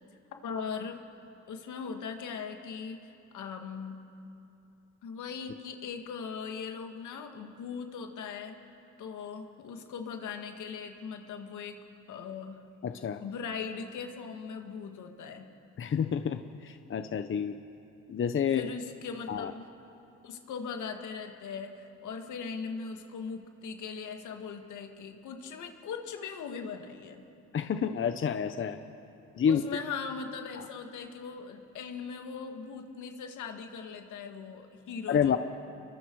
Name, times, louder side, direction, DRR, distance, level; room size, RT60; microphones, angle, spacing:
voice 1, 0.4-1.0 1.5-4.0 5.0-8.6 9.0-11.8 12.1-12.6 13.2-15.5 18.5-19.7 20.2-27.2 29.5-35.4, left 6 dB, 75° left, 4 dB, 2.0 m, -39 dB
voice 2, 12.8-13.2 15.8-17.6 18.1-18.7 19.3-19.5 27.5-28.8 29.4-29.6 30.6-30.7 35.1-35.4, left 7 dB, 40° left, 9 dB, 0.8 m, -29 dB
29.5 x 23.0 x 4.8 m, 2.8 s
cardioid pair, 90°, 30 cm